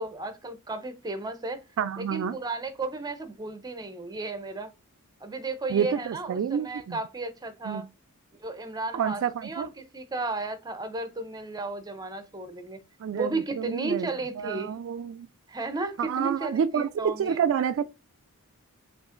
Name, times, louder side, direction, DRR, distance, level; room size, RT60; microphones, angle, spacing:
voice 1, 0.0-1.6 2.0-4.7 5.2-7.9 8.4-12.8 13.1-14.7 15.5-17.4, right 3 dB, 20° right, 0.5 m, -34 dB
voice 2, 1.8-2.3 5.7-7.0 7.7-7.8 8.9-9.7 13.0-14.1 14.4-15.3 16.1-17.8, right 7 dB, 60° right, 0.3 m, -28 dB
5.3 x 2.5 x 2.4 m
head